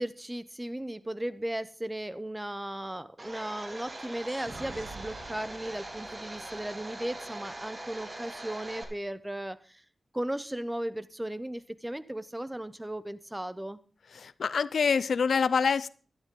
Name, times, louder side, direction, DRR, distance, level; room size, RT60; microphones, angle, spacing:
voice 1, 0.0-9.8 10.1-13.8, right 1 dB, 15° right, 0.8 m, -36 dB
Domestic sounds home sounds, 3.2-8.8, right 1 dB, 40° right, 2.2 m, -42 dB
sound 1, 4.3-7.9, right 3 dB, 80° right, 7.8 m, -50 dB
voice 2, 14.1-15.9, left 6 dB, 85° left, 0.4 m, -26 dB
12.0 x 11.5 x 3.8 m
wide cardioid pair, 70°, 0 cm